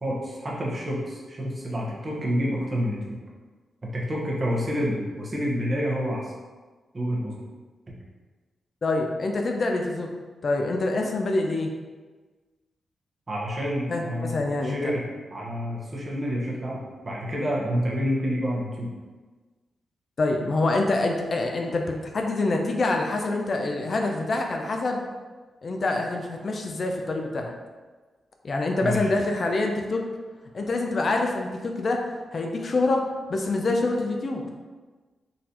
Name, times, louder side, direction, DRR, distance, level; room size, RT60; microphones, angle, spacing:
voice 1, 0.0-3.2 3.9-6.3 6.9-7.3 13.3-15.0 15.3-18.9 28.8-29.1, equal, 40° right, -4 dB, 1.0 m, -28 dB
voice 2, 8.8-10.1 10.4-11.7 13.9-14.9 20.2-25.0 25.6-27.5 28.4-30.0 30.5-32.0 32.3-33.0 33.3-34.4, left 2 dB, 55° left, 2 dB, 0.4 m, -26 dB
3.9 x 2.5 x 2.8 m, 1.3 s
cardioid pair, 60°, 0 cm